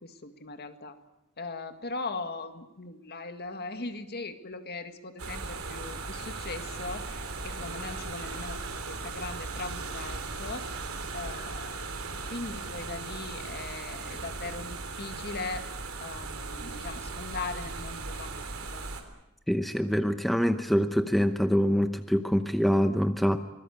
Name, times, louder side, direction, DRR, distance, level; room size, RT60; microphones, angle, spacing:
voice 1, 0.0-1.0 1.4-10.7 11.1-11.8 12.3-15.7 16.0-18.3 18.7-18.9, left 3 dB, 50° left, 8 dB, 1.9 m, -39 dB
sound 1, 5.2-19.0, right 3 dB, 70° right, 3.3 m, -37 dB
voice 2, 19.5-23.4, equal, ahead, 8 dB, 0.9 m, -25 dB
25.5 x 20.5 x 8.3 m, 0.89 s
head